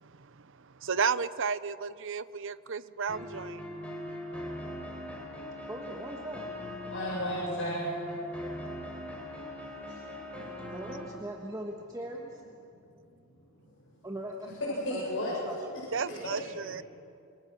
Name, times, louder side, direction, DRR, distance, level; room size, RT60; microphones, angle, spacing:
voice 1, 0.8-3.6 15.9-16.8, right 5 dB, 60° right, 15 dB, 0.8 m, -32 dB
sound 1, 3.1-11.1, left 1 dB, 5° left, 4.2 m, -40 dB
voice 2, 5.7-6.5 10.7-12.4 14.0-15.8 16.1-16.4, right 1 dB, 15° right, 0 dB, 1.6 m, -41 dB
voice 3, 6.9-8.0 9.9-10.0 13.6-13.7 14.6-15.4 16.1-16.8, equal, 60° left, -6 dB, 7.1 m, -34 dB
27.5 x 26.0 x 6.3 m, 2.6 s
head